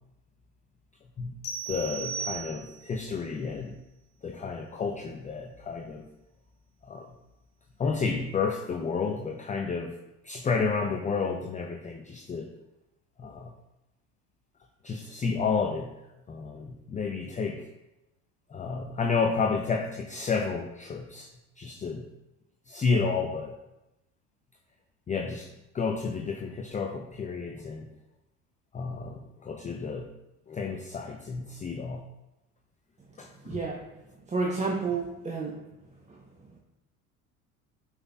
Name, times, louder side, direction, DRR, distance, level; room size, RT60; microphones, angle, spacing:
sound 1, 1.4-3.0, right 5 dB, 50° left, 1.9 m, -36 dB
voice 1, 1.7-3.8 4.2-6.1 6.8-7.1 7.8-10.0 10.2-12.5 13.2-13.5 14.8-15.9 16.3-17.7 18.5-22.1 22.7-23.6 25.1-27.9 28.7-30.1 30.5-32.1 33.2-33.6, left 5 dB, 15° left, 4 dB, 0.6 m, -31 dB
voice 2, 33.5-33.9 34.3-35.6 36.1-36.2, right 4 dB, 15° right, 0 dB, 0.9 m, -30 dB
11.0 x 5.8 x 2.3 m, 0.96 s
figure-of-eight pair, 70°, 45 cm